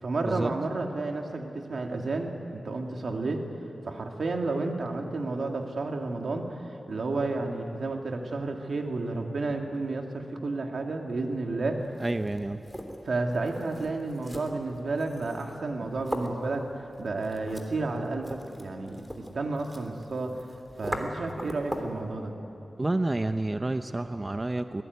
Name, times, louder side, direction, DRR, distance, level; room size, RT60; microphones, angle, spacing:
voice 1, 0.0-3.4 3.9-11.9 13.0-20.5 20.8-22.3, right 3 dB, 80° right, 3 dB, 2.5 m, -31 dB
sound 1, 11.8-22.0, equal, 5° right, 3.3 m, -40 dB
voice 2, 12.0-12.6 22.8-24.8, right 2 dB, 30° right, 9 dB, 0.7 m, -29 dB
24.0 x 18.5 x 9.5 m, 2.8 s
cardioid pair, 60°, 0 cm